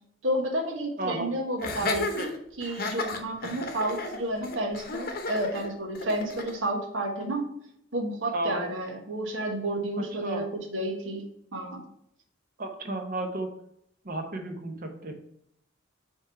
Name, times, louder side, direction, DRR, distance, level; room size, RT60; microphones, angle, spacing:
voice 1, 0.2-2.3 2.6-7.5 7.9-11.2 11.5-11.8, right 1 dB, 80° right, 2 dB, 1.3 m, -31 dB
voice 2, 1.0-1.3 8.3-8.6 10.0-10.4 12.6-13.5 14.0-15.2, right 2 dB, 45° right, 5 dB, 0.9 m, -33 dB
Laughter, 1.6-6.6, left 3 dB, 50° left, 0.8 m, -33 dB
4.9 x 3.6 x 5.5 m, 0.75 s
head